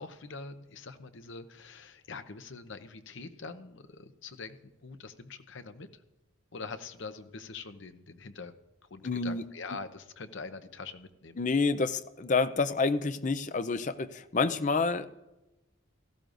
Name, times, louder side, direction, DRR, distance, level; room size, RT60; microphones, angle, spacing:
voice 1, 0.0-6.0 6.5-8.5 8.9-11.4, left 4 dB, 60° left, 10 dB, 0.8 m, -44 dB
voice 2, 9.0-9.4 11.4-15.1, left 4 dB, 35° left, 12 dB, 0.5 m, -28 dB
17.0 x 14.0 x 2.6 m, 1.0 s
head